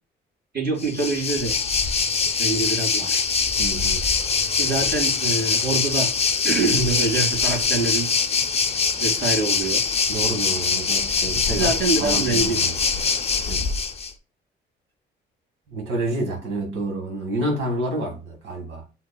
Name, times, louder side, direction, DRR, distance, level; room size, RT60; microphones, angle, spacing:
voice 1, 0.5-1.6 2.4-3.2 4.5-6.1 6.4-8.1 9.0-9.8 11.3-12.6, right 3 dB, 55° right, 2.3 m, -25 dB
Waves surf, 0.8-14.1, left 5 dB, 30° left, 0.6 m, -23 dB
voice 2, 3.6-4.0 10.1-11.7 12.0-12.7 13.5-13.7 15.7-18.8, right 2 dB, 85° right, 1.8 m, -28 dB
8.1 x 2.9 x 2.3 m
cardioid pair, 90°, 20 cm